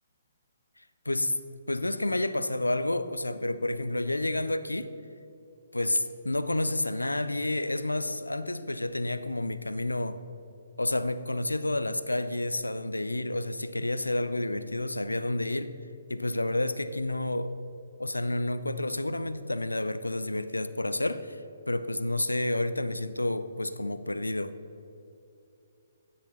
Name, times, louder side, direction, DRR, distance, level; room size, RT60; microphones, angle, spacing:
voice 1, 1.1-1.4 1.7-4.9 5.7-10.2 10.8-15.8 16.1-17.6 18.0-24.6, left 1 dB, 80° left, 12 dB, 0.5 m, -30 dB
16.0 x 6.3 x 4.1 m, 2.7 s
figure-of-eight pair, 130°, 0 cm